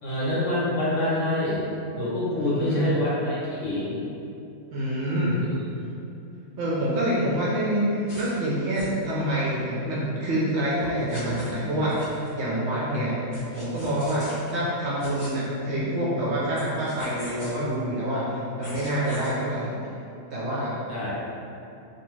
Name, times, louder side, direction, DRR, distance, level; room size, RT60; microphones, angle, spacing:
voice 1, 0.0-1.6 2.0-4.0 20.9-21.1, left 1 dB, 65° left, -8 dB, 0.9 m, -26 dB
voice 2, 2.3-2.9 4.7-5.5 6.6-19.7 20.3-20.7, right 1 dB, 65° right, -7 dB, 0.7 m, -27 dB
sound 1, 8.1-8.4 8.7-9.0 10.8-12.3 13.3-14.5 15.0-15.3 16.5-17.5 18.6-19.3, equal, 45° left, 0.4 m, -42 dB
2.4 x 2.3 x 3.0 m, 2.7 s
omnidirectional pair, 1.5 m